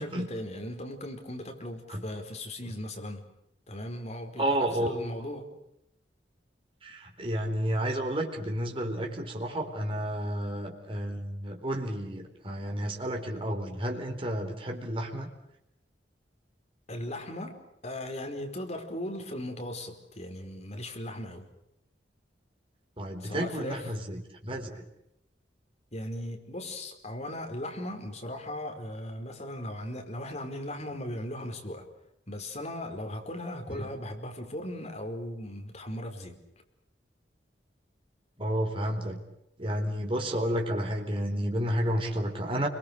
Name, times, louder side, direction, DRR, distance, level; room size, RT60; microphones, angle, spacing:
voice 1, 0.0-3.3 3.7-5.5 16.9-21.5 23.2-23.9 25.9-31.9 32.3-36.4, left 1 dB, 40° left, 4 dB, 4.8 m, -38 dB
voice 2, 4.4-5.0 6.8-15.3 23.0-24.8 33.7-33.9 38.4-39.2 39.6-42.7, right 1 dB, 30° right, 2 dB, 4.0 m, -31 dB
29.5 x 23.0 x 6.7 m, 0.83 s
head